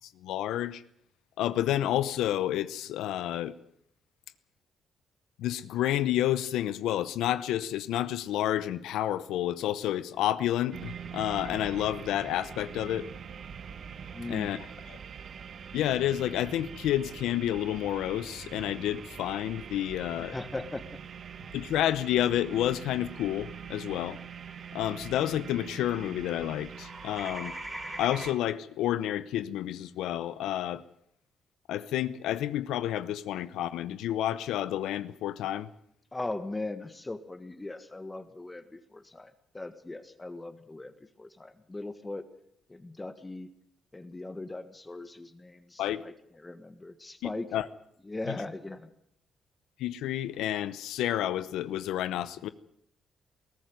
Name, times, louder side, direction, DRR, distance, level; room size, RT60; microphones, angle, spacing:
voice 1, 0.2-0.8 1.4-3.5 5.4-13.1 14.3-15.0 15.7-20.4 21.5-24.2 24.7-27.5 28.0-30.8 31.7-35.7 45.8-46.0 47.2-47.7 48.3-48.4 49.8-52.5, left 12 dB, 85° left, 0.8 m, -30 dB
sound 1, 10.7-28.3, right 7 dB, 55° right, 1.3 m, -44 dB
voice 2, 14.1-14.5 20.2-20.8 36.1-40.9 41.2-42.3 42.7-43.5 43.9-46.1 46.4-47.5 48.1-48.9, left 2 dB, 15° left, 1.6 m, -39 dB
sound 2, 22.4-26.2 26.4-28.3, right 1 dB, 10° right, 3.0 m, -45 dB
21.5 x 14.0 x 9.3 m
cardioid pair, 90°, 0 cm